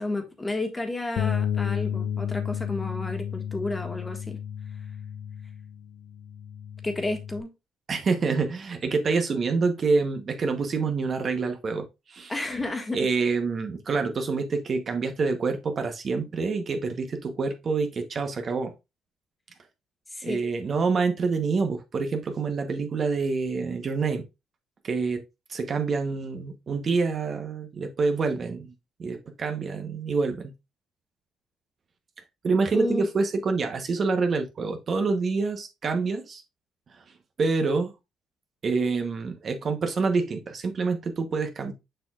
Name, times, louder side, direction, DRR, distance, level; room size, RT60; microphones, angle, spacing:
voice 1, 0.0-4.4 6.8-7.5 12.3-13.0 20.1-20.4 32.7-33.1, left 2 dB, 15° left, 1.5 m, -31 dB
Bass guitar, 1.2-7.4, left 9 dB, 70° left, 0.4 m, -32 dB
voice 2, 7.9-12.3 12.9-18.7 20.2-24.2 24.8-25.2 25.5-28.7 29.0-30.5 32.4-36.4 37.0-37.1 37.4-37.9 38.6-41.7, right 4 dB, 40° right, 0.9 m, -27 dB
6.7 x 5.9 x 2.4 m
cardioid pair, 110°, 0 cm